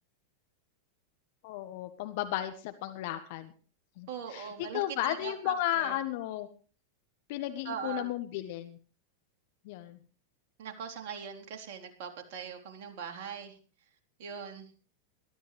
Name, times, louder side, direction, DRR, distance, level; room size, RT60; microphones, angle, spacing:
voice 1, 1.4-3.5 4.0-6.5 7.3-8.8 9.6-10.0, left 13 dB, 50° left, 10 dB, 1.3 m, -34 dB
voice 2, 4.1-6.0 7.6-8.1 10.6-13.6 14.2-14.8, right 7 dB, 50° right, 2 dB, 3.7 m, -41 dB
22.0 x 13.5 x 3.3 m, 0.39 s
figure-of-eight pair, 90°, 0 cm